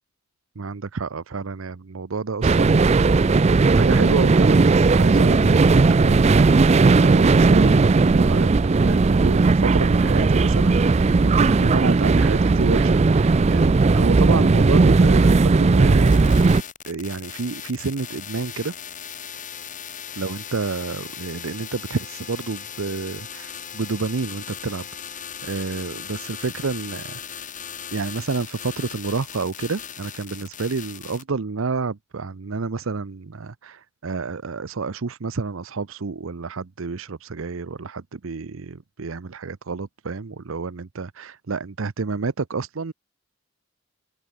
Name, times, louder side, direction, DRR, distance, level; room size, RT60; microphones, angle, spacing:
voice 1, 0.6-8.5 8.8-16.5 16.9-18.7 20.2-24.9 25.1-27.2 27.9-42.9, right 4 dB, 70° right, 0.7 m, -29 dB
sound 1, 2.4-16.6, right 3 dB, 30° right, 0.4 m, -16 dB
sound 2, 16.0-31.2, left 8 dB, 35° left, 7.8 m, -38 dB
open air
head